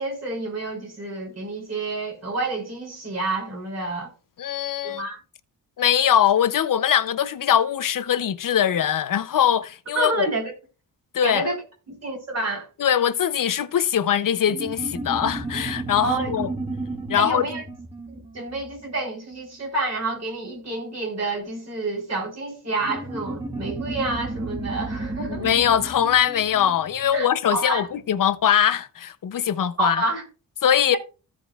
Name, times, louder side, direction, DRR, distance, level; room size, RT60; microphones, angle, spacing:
voice 1, 0.0-4.1 4.8-5.2 9.9-10.5 11.2-11.6 12.0-12.7 16.0-16.3 17.2-17.6 18.1-25.5 27.1-27.9 29.8-30.2, right 2 dB, 45° right, 4.0 m, -28 dB
voice 2, 4.4-5.0 5.8-10.3 11.1-11.5 12.8-16.5 17.1-17.5 25.3-30.0 30.6-31.0, left 9 dB, 60° left, 0.7 m, -22 dB
sound 1, 14.5-19.4 22.8-27.7, right 2 dB, 15° right, 1.5 m, -33 dB
15.5 x 5.2 x 2.4 m
wide cardioid pair, 125°, 36 cm